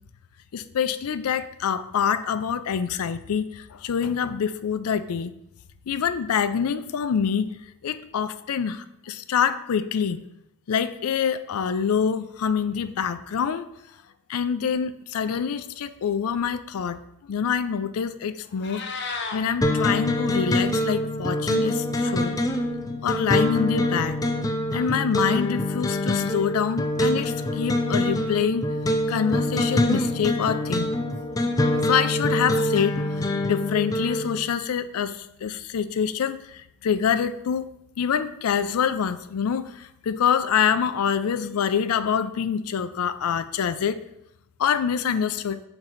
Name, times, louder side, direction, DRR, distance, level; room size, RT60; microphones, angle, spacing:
voice 1, 0.5-5.3 5.9-7.5 7.8-10.2 10.7-13.7 14.3-17.0 17.3-22.4 23.0-24.2 24.7-28.7 29.1-30.9 31.8-33.0 33.5-37.7 38.0-44.0 44.6-45.6, left 7 dB, 85° left, 13 dB, 0.4 m, -26 dB
Meow, 18.4-19.4, left 4 dB, 55° left, 0.7 m, -33 dB
sound 1, 19.6-34.4, left 1 dB, 15° left, 0.4 m, -25 dB
4.6 x 3.8 x 5.5 m, 0.80 s
head